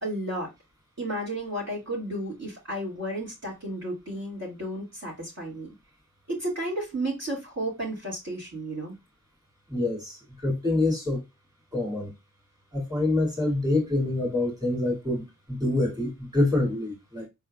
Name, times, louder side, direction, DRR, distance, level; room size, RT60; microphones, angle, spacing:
voice 1, 0.0-0.5 1.0-5.7 6.3-9.0, right 1 dB, 50° right, 2.2 m, -32 dB
voice 2, 9.7-11.2 11.7-12.1 12.7-17.3, left 2 dB, 10° right, 2.3 m, -26 dB
4.6 x 3.5 x 2.3 m
wide cardioid pair, 85°, 32 cm